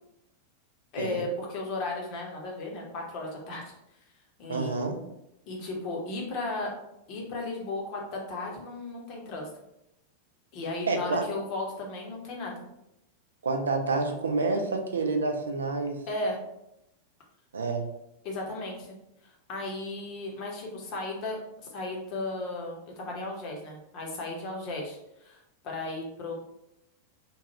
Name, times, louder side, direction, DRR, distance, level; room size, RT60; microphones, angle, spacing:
voice 1, 0.9-3.7 4.4-4.8 5.5-6.7 7.1-9.5 10.5-12.6 16.1-16.4 18.2-19.0 19.2-26.3, left 2 dB, 40° left, -1 dB, 0.9 m, -35 dB
voice 2, 4.5-5.0 10.9-11.2 13.4-16.0 17.5-17.9, right 3 dB, 70° right, 3 dB, 0.4 m, -28 dB
3.0 x 2.3 x 2.9 m, 0.84 s
figure-of-eight pair, 90°, 0 cm